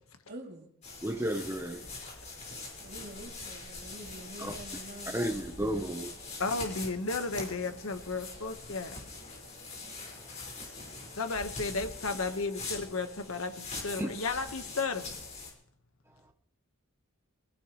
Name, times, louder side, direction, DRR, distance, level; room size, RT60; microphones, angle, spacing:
voice 1, 0.3-0.7 2.8-5.6, right 1 dB, 50° right, 2.9 m, -47 dB
sound 1, 0.8-15.5, left 3 dB, 35° left, 5.3 m, -43 dB
voice 2, 1.0-1.8 4.4-4.5 5.1-6.2 14.0-14.1, right 1 dB, 10° right, 1.0 m, -32 dB
voice 3, 6.4-9.2 11.1-15.2, left 3 dB, 85° left, 1.4 m, -34 dB
24.5 x 15.5 x 3.2 m
head